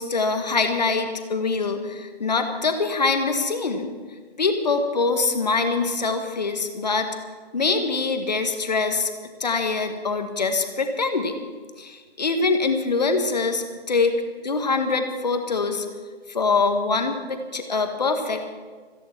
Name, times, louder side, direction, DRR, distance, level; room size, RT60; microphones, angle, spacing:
voice 1, 0.0-3.9 4.4-7.1 7.5-9.1 9.4-11.4 11.8-14.2 14.4-15.9 16.3-18.5, left 4 dB, 40° left, 6 dB, 1.7 m, -24 dB
27.5 x 10.5 x 4.5 m, 1.5 s
figure-of-eight pair, 165°, 32 cm